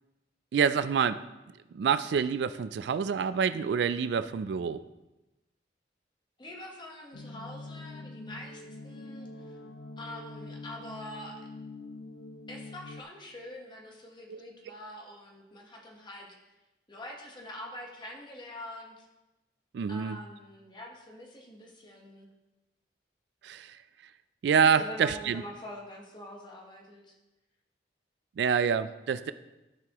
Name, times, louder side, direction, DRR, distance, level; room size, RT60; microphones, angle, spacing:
voice 1, 0.5-1.2 1.7-4.8 14.3-14.4 19.7-20.2 23.4-23.8 24.4-25.4 28.4-29.3, right 6 dB, 70° right, 13 dB, 0.3 m, -27 dB
voice 2, 6.4-9.6 10.0-11.4 12.5-16.3 16.9-19.1 19.9-22.3 24.8-27.2, left 1 dB, 25° left, 0 dB, 1.2 m, -45 dB
sound 1, 7.1-13.0, left 2 dB, 70° left, 0.5 m, -44 dB
13.0 x 4.7 x 3.0 m, 1.0 s
head